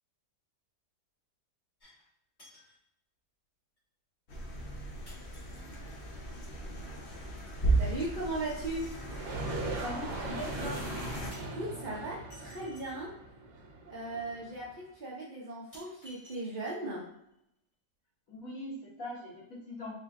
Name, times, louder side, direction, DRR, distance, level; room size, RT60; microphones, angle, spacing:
sound 1, 1.8-2.1 2.4-2.8 3.8-3.9 5.1-6.0 8.5-9.4 11.3-13.1 14.2-14.3 14.9-15.0 15.7-17.0 17.3-17.4, left 1 dB, 30° left, 1.6 m, -57 dB
sound 2, 4.3-11.3, right 2 dB, 85° left, 0.5 m, -35 dB
voice 1, 7.8-8.9 11.5-13.1 13.9-17.1, right 2 dB, 60° right, -6 dB, 0.5 m, -37 dB
sound 3, 9.0-14.7, right 2 dB, 85° right, 1.3 m, -40 dB
voice 2, 9.8-10.8 18.3-19.9, left 1 dB, 60° left, -4 dB, 1.4 m, -41 dB
3.6 x 2.2 x 3.5 m, 0.77 s
omnidirectional pair, 1.7 m